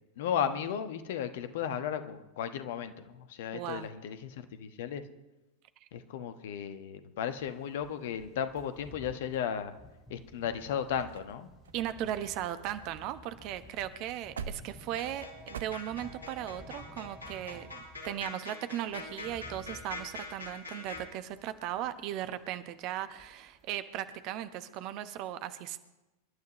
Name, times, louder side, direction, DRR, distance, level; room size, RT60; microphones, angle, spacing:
voice 1, 0.2-5.0 5.9-9.7 10.1-11.5, left 8 dB, 55° left, 10 dB, 1.2 m, -35 dB
voice 2, 3.5-3.9 5.8-5.9 11.7-25.8, right 12 dB, 40° right, 12 dB, 1.0 m, -37 dB
sound 1, 7.3-18.3 18.6-22.0 22.3-22.6 22.9-23.7 23.9-24.1, left 1 dB, 10° left, 5.8 m, -54 dB
sound 2, 9.3-10.2 10.8-10.9 11.1-11.3 11.6-13.2 13.5-13.6 13.9-15.6, right 6 dB, 65° right, 0.8 m, -46 dB
sound 3, 15.0-21.0, left 3 dB, 85° right, 4.4 m, -44 dB
28.0 x 12.0 x 3.1 m, 1.0 s
figure-of-eight pair, 90°, 0 cm